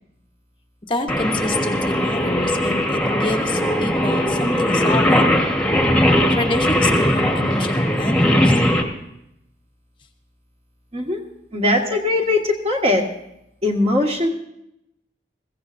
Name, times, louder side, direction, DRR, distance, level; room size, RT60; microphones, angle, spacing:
voice 1, 0.8-5.3 6.3-8.5, left 2 dB, 25° left, 4 dB, 0.9 m, -27 dB
Singing, 1.1-8.8, equal, 5° left, 1.3 m, -19 dB
voice 2, 11.5-13.0 13.6-14.3, left 2 dB, 35° right, 1 dB, 1.7 m, -20 dB
21.5 x 15.5 x 2.6 m, 0.81 s
head